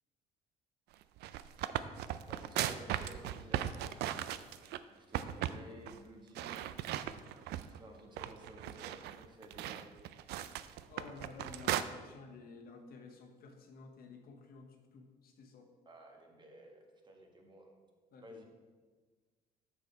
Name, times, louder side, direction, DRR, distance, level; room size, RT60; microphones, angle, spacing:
sound 1, 1.0-4.8 5.1-5.6 5.9-6.0 6.3-7.8 8.2-11.8, right 12 dB, 75° right, 0.4 m, -37 dB
voice 1, 2.2-3.7 4.9-6.6 7.7-9.8 15.8-17.7 18.2-18.4, right 1 dB, 25° right, 1 dB, 1.3 m, -54 dB
voice 2, 10.9-15.7 18.1-18.4, left 4 dB, 65° left, 3 dB, 1.1 m, -53 dB
6.7 x 6.1 x 4.5 m, 1.4 s
cardioid pair, 110°, 17 cm